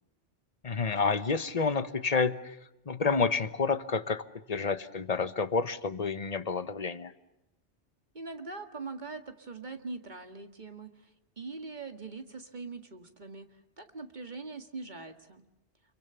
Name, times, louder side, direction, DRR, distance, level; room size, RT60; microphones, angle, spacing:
voice 1, 0.6-2.6 2.9-7.1, left 4 dB, 35° left, 13 dB, 1.1 m, -29 dB
voice 2, 8.1-11.1 11.4-13.5 13.8-15.4, right 3 dB, 45° right, 7 dB, 2.0 m, -42 dB
29.5 x 23.5 x 6.9 m, 0.90 s
omnidirectional pair, 1.1 m